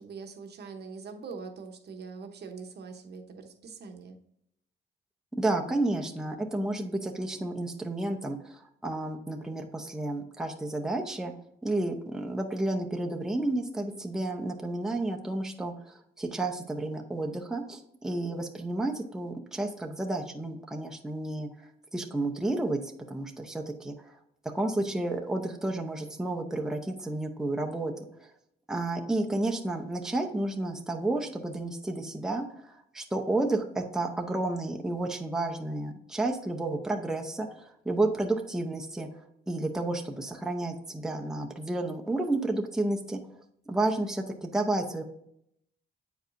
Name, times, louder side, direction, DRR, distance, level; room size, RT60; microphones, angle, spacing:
voice 1, 0.0-4.2, right 5 dB, 55° right, 5 dB, 0.9 m, -43 dB
voice 2, 5.3-11.3 11.6-21.5 21.9-22.8 23.1-24.2 24.5-27.9 28.2-28.3 28.7-43.2 43.7-45.0, right 2 dB, 5° right, 2 dB, 0.7 m, -31 dB
7.9 x 4.8 x 2.6 m, 0.75 s
cardioid pair, 90°, 20 cm